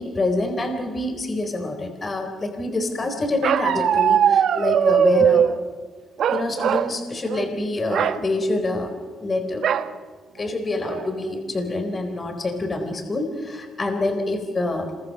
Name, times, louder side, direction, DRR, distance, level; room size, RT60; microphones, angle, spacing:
voice 1, 0.0-5.5 6.3-8.9 9.2-9.7 10.4-14.9, left 2 dB, 30° left, 4 dB, 4.0 m, -26 dB
Bark, 3.4-5.5 6.2-6.9 7.3-7.5 7.9-8.2 9.6-9.9 10.4-10.5 10.9-11.3, right 8 dB, 70° right, 1.1 m, -20 dB
27.0 x 23.0 x 6.6 m, 1.5 s
cardioid pair, 90°, 0 cm